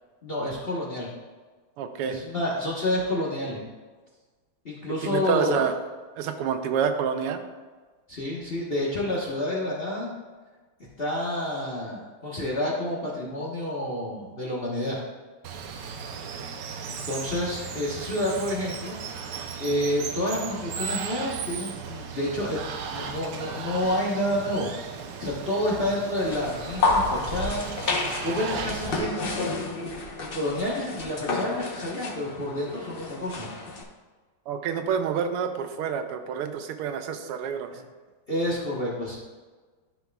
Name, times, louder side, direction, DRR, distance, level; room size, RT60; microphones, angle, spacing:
voice 1, 0.2-1.1 2.0-3.6 4.6-5.7 8.1-10.1 11.0-15.0 16.9-19.0 19.2-19.3 19.6-24.7 25.2-27.6 27.9-29.5 30.3-33.5 37.7-37.8 38.3-39.2, left 1 dB, 35° left, -5 dB, 1.0 m, -29 dB
voice 2, 1.8-2.2 5.1-5.7 6.2-7.4 34.5-37.7, right 7 dB, 90° right, 7 dB, 1.6 m, -28 dB
Water, 15.4-29.0, right 6 dB, 70° right, 1.1 m, -36 dB
sound 1, 26.2-33.8, left 3 dB, 70° left, 0.5 m, -30 dB
12.0 x 5.8 x 2.3 m, 1.4 s
omnidirectional pair, 2.4 m